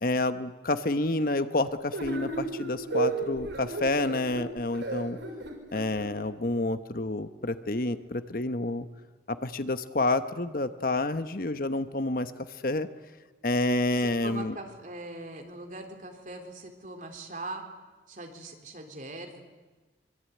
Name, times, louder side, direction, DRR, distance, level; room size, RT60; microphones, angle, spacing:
voice 1, 0.0-5.2 5.7-8.9 9.3-12.9 13.4-14.5, left 2 dB, 50° left, 11 dB, 1.1 m, -29 dB
sound 1, 1.9-6.1, right 2 dB, 90° right, 5.8 m, -33 dB
voice 2, 13.9-17.7 18.1-19.4, right 2 dB, 45° right, 3 dB, 3.7 m, -41 dB
24.5 x 23.5 x 9.4 m, 1.3 s
head